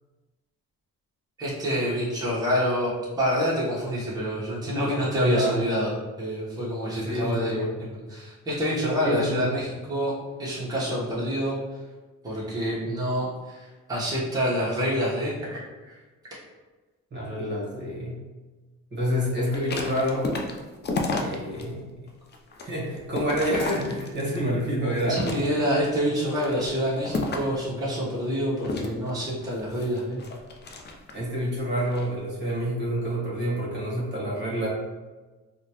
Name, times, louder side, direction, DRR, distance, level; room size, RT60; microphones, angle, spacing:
voice 1, 1.4-5.9 6.2-10.1 10.4-11.6 12.2-15.6 15.9-16.0 25.1-30.2, equal, 10° right, -8 dB, 1.0 m, -27 dB
voice 2, 5.2-5.6 7.0-7.7 9.0-9.7 17.1-18.2 18.9-20.3 21.2-21.9 22.6-25.2 25.5-25.6 31.1-34.7, equal, 35° right, -5 dB, 1.2 m, -28 dB
sound 1, 19.4-21.6 22.1-24.4 24.9-25.8 26.3-27.6 28.6-31.3 31.8-32.1, left 3 dB, 35° left, 0.5 m, -32 dB
3.8 x 2.1 x 2.9 m, 1.2 s
cardioid pair, 90°, 30 cm